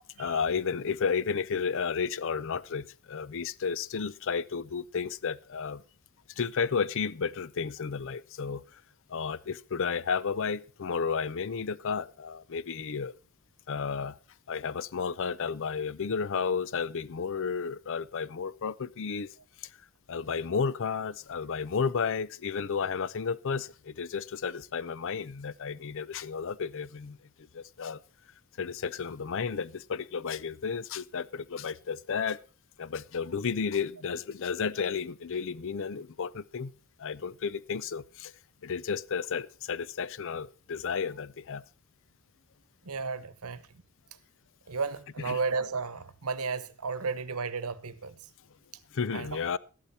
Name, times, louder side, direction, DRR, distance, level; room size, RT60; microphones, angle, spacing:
voice 1, 0.2-5.8 6.4-8.8 9.1-13.1 13.7-14.2 14.5-19.3 19.6-19.7 20.1-27.2 27.5-28.0 28.6-32.4 32.8-36.7 37.0-38.3 38.6-41.6 45.2-45.4 48.9-49.6, left 6 dB, 60° left, 0.5 m, -32 dB
voice 2, 42.8-43.6 44.7-48.2 49.1-49.4, right 4 dB, 75° right, 1.0 m, -33 dB
13.5 x 11.5 x 4.1 m
head